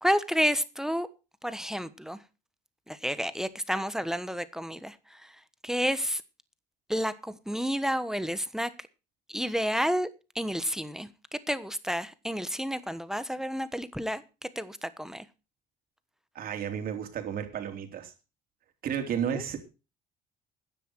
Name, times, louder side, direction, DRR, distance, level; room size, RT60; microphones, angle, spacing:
voice 1, 0.0-1.1 1.4-2.2 2.9-4.9 5.6-6.2 6.9-8.7 9.3-10.1 10.3-11.1 11.5-14.2 14.5-15.2 19.3-19.4, equal, 5° right, 1.2 m, -30 dB
voice 2, 16.4-18.1 18.8-19.6, right 8 dB, 60° right, 3.7 m, -32 dB
15.0 x 10.0 x 4.6 m
cardioid pair, 110°, 17 cm